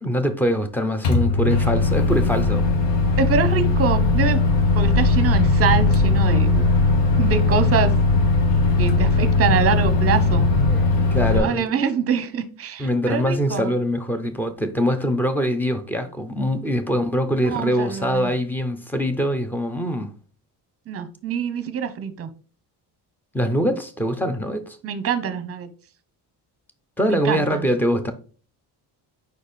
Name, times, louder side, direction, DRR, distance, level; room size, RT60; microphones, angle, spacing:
voice 1, 0.0-2.7 10.6-11.7 12.8-20.1 23.3-24.8 27.0-28.1, equal, 5° left, 0.5 m, -23 dB
Microwave oven, 1.0-11.4, left 3 dB, 85° left, 1.5 m, -19 dB
voice 2, 3.2-4.4 4.7-6.7 7.2-7.9 8.8-10.5 11.3-13.7 17.4-18.3 20.9-22.3 24.8-25.7 27.1-27.7, right 7 dB, 35° right, 0.8 m, -24 dB
5.2 x 4.2 x 5.0 m
cardioid pair, 170°, 42 cm